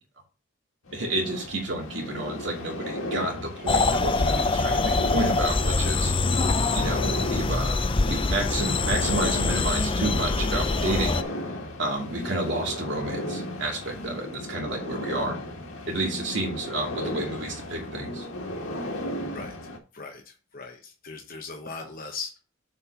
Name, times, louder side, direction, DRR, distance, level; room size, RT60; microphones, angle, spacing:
sound 1, 0.9-19.8, left 1 dB, 90° left, 2.0 m, -35 dB
voice 1, 0.9-6.1 6.7-7.8 8.1-11.2 11.8-15.4 15.9-18.2, right 2 dB, 55° right, 0 dB, 2.5 m, -30 dB
sound 2, 3.7-11.2, left 3 dB, 25° left, 0.5 m, -24 dB
voice 2, 19.9-22.4, left 4 dB, 40° left, 2 dB, 1.0 m, -39 dB
7.5 x 4.5 x 5.7 m, 0.34 s
head